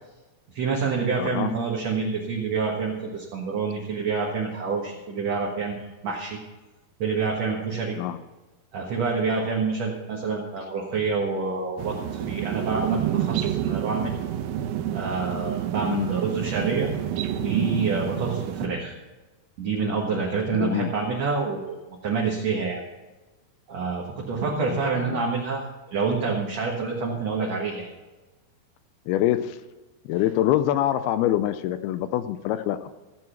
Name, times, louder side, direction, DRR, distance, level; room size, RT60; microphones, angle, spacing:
voice 1, 0.5-6.4 7.0-7.9 8.7-14.1 14.9-16.9 17.3-18.9 19.6-21.8 22.0-22.8 23.7-25.6 25.9-27.9, right 4 dB, 55° right, -3 dB, 2.2 m, -27 dB
voice 2, 1.2-1.5 7.9-8.2 15.9-16.1 20.5-20.9 24.5-25.2 29.1-29.6 30.1-32.9, left 12 dB, 80° left, 12 dB, 2.4 m, -25 dB
sound 1, 11.8-18.7, right 11 dB, 80° right, 2.3 m, -28 dB
16.0 x 7.6 x 5.8 m, 1.2 s
omnidirectional pair, 4.7 m